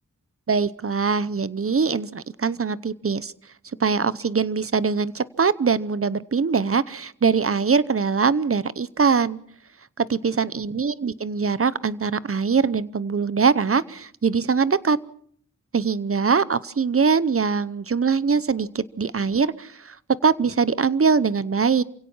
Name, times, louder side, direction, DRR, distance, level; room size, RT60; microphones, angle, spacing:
voice 1, 0.5-3.3 3.8-9.4 10.0-15.0 15.7-20.0 20.2-21.8, right 5 dB, 45° right, 17 dB, 0.8 m, -22 dB
28.0 x 17.0 x 5.6 m, 0.62 s
wide cardioid pair, 85°, 31 cm